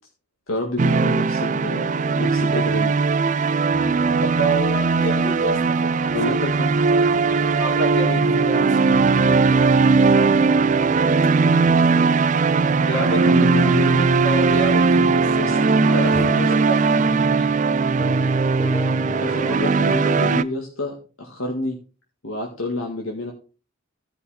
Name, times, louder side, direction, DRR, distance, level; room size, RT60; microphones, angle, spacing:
voice 1, 0.5-3.0 6.1-7.5 13.0-14.1 15.4-16.7 17.2-17.5 19.2-21.8 22.2-23.3, left 2 dB, 80° left, 1.9 m, -29 dB
sound 1, 0.8-20.4, right 4 dB, 35° right, 0.4 m, -19 dB
sound 2, 3.7-19.6, left 2 dB, 20° left, 2.0 m, -35 dB
voice 2, 4.2-6.2 7.6-8.8 12.8-13.3 14.2-16.1 16.7-16.8, right 2 dB, 65° left, 3.4 m, -28 dB
sound 3, 11.0-14.9 15.5-15.6 15.7-17.0 18.7-18.9, equal, 45° left, 2.4 m, -46 dB
15.5 x 5.6 x 4.3 m
head